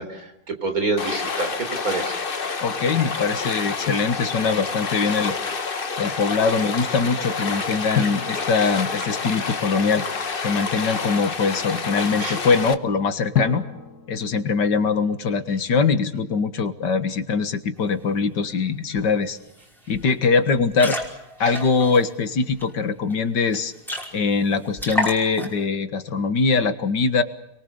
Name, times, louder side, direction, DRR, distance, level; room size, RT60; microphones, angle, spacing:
voice 1, 0.0-2.2 7.9-8.1 12.2-12.4 21.4-21.6, right 3 dB, 55° right, 7 dB, 4.3 m, -28 dB
Stream, 1.0-12.7, left 4 dB, 35° left, 1.3 m, -28 dB
voice 2, 2.6-5.4 6.0-10.1 10.4-13.6 14.1-19.4 19.9-21.0 21.4-23.7 24.1-27.2, left 5 dB, 85° left, 10 dB, 2.3 m, -22 dB
Drum, 7.9-9.8 13.3-15.3, left 7 dB, 65° left, 2.0 m, -30 dB
sound 1, 18.9-19.0 19.4-19.6 19.9-20.1 20.6-22.6 23.1-23.2 23.5-23.6 23.8-24.4 24.8-25.6, left 1 dB, ahead, 5.3 m, -30 dB
29.0 x 23.0 x 6.9 m, 0.84 s
omnidirectional pair, 1.8 m